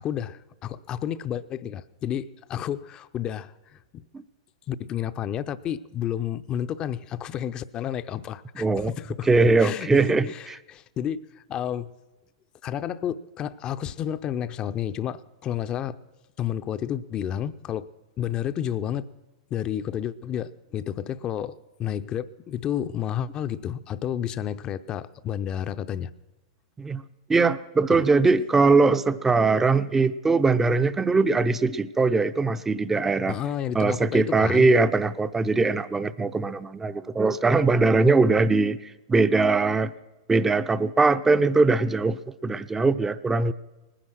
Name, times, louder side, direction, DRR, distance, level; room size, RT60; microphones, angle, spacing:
voice 1, 0.0-4.0 4.7-9.3 9.6-11.9 12.6-16.0 16.4-17.9 18.2-19.1 19.5-21.5 21.8-26.1 27.9-28.0 33.3-34.7, left 10 dB, 30° left, 13 dB, 0.7 m, -31 dB
voice 2, 8.5-8.9 9.3-10.3 26.8-27.0 27.3-33.4 33.7-39.9 40.3-43.5, right 3 dB, 15° right, 13 dB, 0.6 m, -21 dB
19.5 x 10.0 x 6.3 m, 1.1 s
hypercardioid pair, 105°, 3 cm